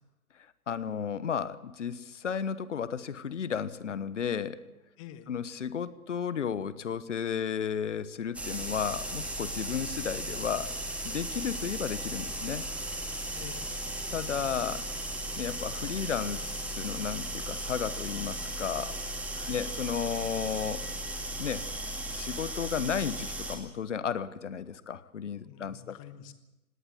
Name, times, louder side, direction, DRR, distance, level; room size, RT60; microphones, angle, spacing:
voice 1, 0.7-4.6 5.3-10.7 11.0-12.6 14.1-14.9 15.4-19.2 19.5-20.9 21.4-21.7 22.1-25.9, left 7 dB, 55° left, 16 dB, 1.2 m, -33 dB
voice 2, 5.0-5.3 9.6-9.9 13.3-13.7 19.3-19.6 25.3-26.3, left 11 dB, 25° left, 11 dB, 1.4 m, -48 dB
sound 1, 8.3-23.6, right 1 dB, 5° right, 2.0 m, -36 dB
19.5 x 18.0 x 7.7 m, 0.99 s
figure-of-eight pair, 130°, 44 cm